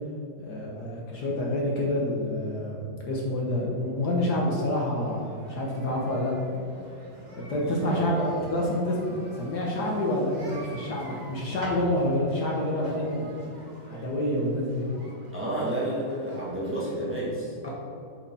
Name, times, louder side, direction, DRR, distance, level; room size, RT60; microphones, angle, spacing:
voice 1, 0.5-6.3 7.3-13.3 13.8-14.9, left 1 dB, 60° left, -3 dB, 1.6 m, -28 dB
sound 1, 4.9-17.0, right 1 dB, 25° right, 1.2 m, -46 dB
voice 2, 7.8-8.1 15.3-17.7, right 1 dB, 5° right, -6 dB, 1.7 m, -30 dB
7.3 x 5.0 x 5.6 m, 2.7 s
omnidirectional pair, 2.1 m